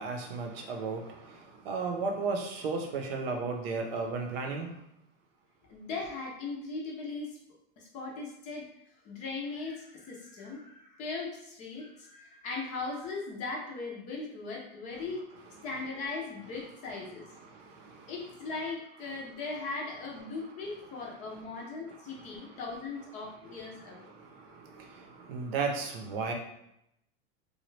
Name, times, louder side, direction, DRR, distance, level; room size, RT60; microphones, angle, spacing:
voice 1, 0.0-4.8 17.4-18.1 21.9-22.5 24.1-26.3, right 4 dB, 80° right, 3 dB, 0.7 m, -35 dB
voice 2, 5.7-7.3 7.8-8.7 9.0-15.2 15.6-17.2 18.1-24.0, left 3 dB, 25° left, -2 dB, 0.5 m, -38 dB
3.0 x 2.2 x 3.1 m, 0.79 s
supercardioid pair, 170°, 29 cm